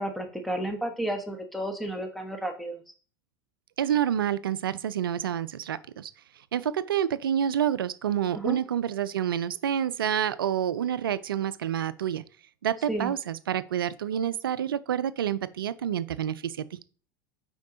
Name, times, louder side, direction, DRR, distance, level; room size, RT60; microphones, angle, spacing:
voice 1, 0.0-2.8 8.3-8.6 12.9-13.1, right 1 dB, ahead, 1.2 m, -32 dB
voice 2, 3.8-6.1 6.5-12.2 12.6-16.8, right 9 dB, 85° right, 0.4 m, -28 dB
5.2 x 5.0 x 3.8 m
hypercardioid pair, 85°, 12 cm